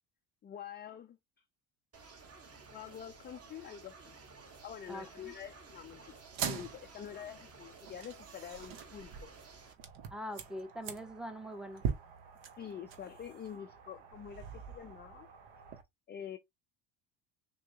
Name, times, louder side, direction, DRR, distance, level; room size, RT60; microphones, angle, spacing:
voice 1, 0.4-1.2 2.7-4.2 4.6-9.3 12.6-15.3 16.1-16.4, left 9 dB, 25° left, 0.3 m, -46 dB
sound 1, 1.9-9.7, right 4 dB, 30° right, 1.0 m, -54 dB
voice 2, 4.9-5.3 10.1-11.8, equal, ahead, 0.7 m, -43 dB
sound 2, 6.2-15.8, right 7 dB, 65° right, 1.0 m, -43 dB
6.0 x 2.1 x 2.7 m
supercardioid pair, 75°, 50 cm